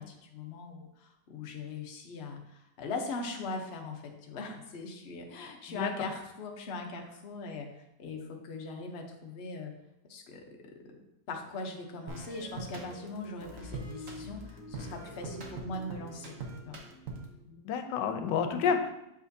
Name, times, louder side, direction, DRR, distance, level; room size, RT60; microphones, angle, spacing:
voice 1, 0.0-7.7 8.0-9.7 10.1-10.4 11.3-16.3 16.7-16.8, left 3 dB, 50° left, 2 dB, 0.9 m, -40 dB
voice 2, 5.7-6.1 17.5-19.0, left 6 dB, 90° left, 7 dB, 1.3 m, -30 dB
sound 1, 12.1-17.4, right 2 dB, 55° right, 1.2 m, -43 dB
7.4 x 5.0 x 2.7 m, 0.86 s
omnidirectional pair, 1.9 m